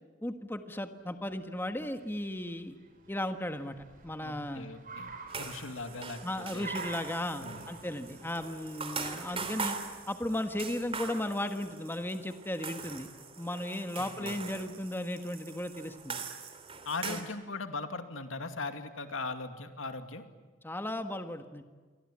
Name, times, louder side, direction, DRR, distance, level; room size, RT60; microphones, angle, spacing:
voice 1, 0.2-2.8 3.1-3.8 4.0-4.7 6.2-9.8 10.1-13.1 13.4-16.2 17.1-17.3 20.6-21.6, left 1 dB, 10° left, 7 dB, 1.4 m, -35 dB
Car, 1.4-11.6, right 4 dB, 45° right, 5.4 m, -49 dB
voice 2, 4.2-6.2 6.5-6.7 7.4-7.7 14.0-14.4 16.9-20.2, left 3 dB, 80° left, 7 dB, 2.5 m, -39 dB
sound 1, 5.3-17.2, right 5 dB, 30° right, 3.1 m, -42 dB
28.5 x 24.0 x 8.7 m, 1.4 s
head